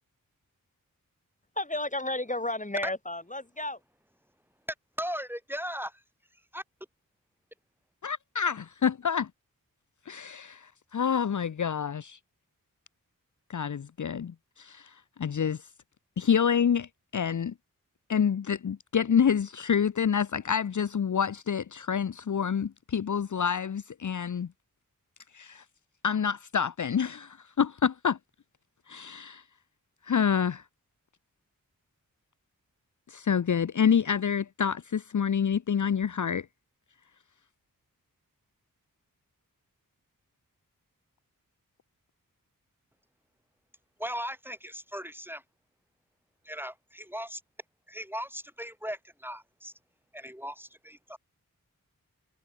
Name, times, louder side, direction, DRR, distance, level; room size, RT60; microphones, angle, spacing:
voice 1, 1.6-3.8, left 2 dB, 20° left, 4.9 m, -32 dB
voice 2, 5.0-5.9 6.5-6.6 44.0-45.4 46.4-47.4 47.9-49.7 50.1-51.2, equal, 5° right, 3.3 m, -37 dB
voice 3, 8.0-9.3 10.1-12.2 13.5-15.6 16.2-17.5 18.1-24.5 25.3-25.6 26.0-28.2 28.9-29.4 30.0-30.6 33.1-36.5, left 7 dB, 60° left, 0.8 m, -27 dB
wide cardioid pair, 55°, 34 cm